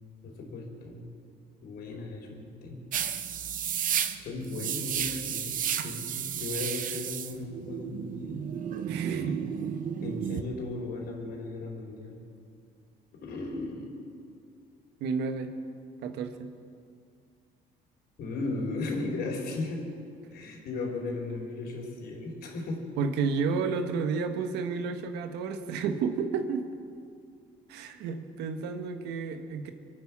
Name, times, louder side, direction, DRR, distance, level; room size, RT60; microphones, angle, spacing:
voice 1, 0.2-1.1 1.6-2.8 4.2-8.4 9.1-9.4 10.0-12.2 13.1-13.9 18.2-19.8 20.3-22.8, left 3 dB, 70° left, 0 dB, 3.8 m, -36 dB
sound 1, 2.9-10.4, right 9 dB, 55° right, 0.9 m, -32 dB
voice 2, 8.9-9.7 15.0-15.5 16.0-16.5 23.0-26.7 27.7-29.7, right 5 dB, 90° right, 8 dB, 1.3 m, -31 dB
25.5 x 9.3 x 6.1 m, 2.3 s
cardioid pair, 110°, 17 cm